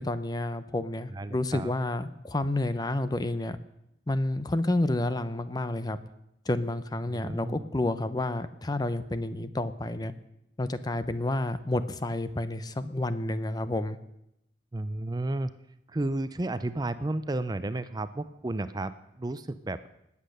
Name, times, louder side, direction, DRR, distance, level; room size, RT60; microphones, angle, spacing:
voice 1, 0.0-3.6 4.1-6.0 6.5-10.1 10.6-14.0, left 1 dB, 25° left, 12 dB, 0.7 m, -30 dB
voice 2, 1.1-1.7 7.1-7.6 14.7-15.5 15.9-19.9, right 2 dB, 25° right, 13 dB, 0.5 m, -32 dB
19.5 x 8.5 x 6.7 m, 0.81 s
head